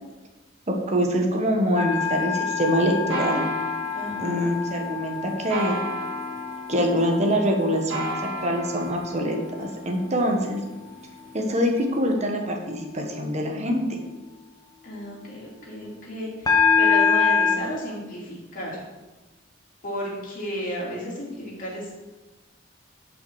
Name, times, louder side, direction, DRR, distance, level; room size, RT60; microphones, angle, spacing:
voice 1, 0.7-3.5 4.2-5.8 6.7-8.0 8.4-10.6 11.3-14.0, equal, 35° right, 2 dB, 1.3 m, -24 dB
sound 1, 1.8-10.0 10.5-10.9 16.5-17.6, left 6 dB, 20° left, 1.0 m, -26 dB
sound 2, 1.9-12.1, equal, 75° right, 2.2 m, -35 dB
voice 2, 3.9-4.5 14.8-18.8 19.8-22.0, equal, 45° left, -4 dB, 3.0 m, -33 dB
10.5 x 5.6 x 4.9 m, 1.1 s
head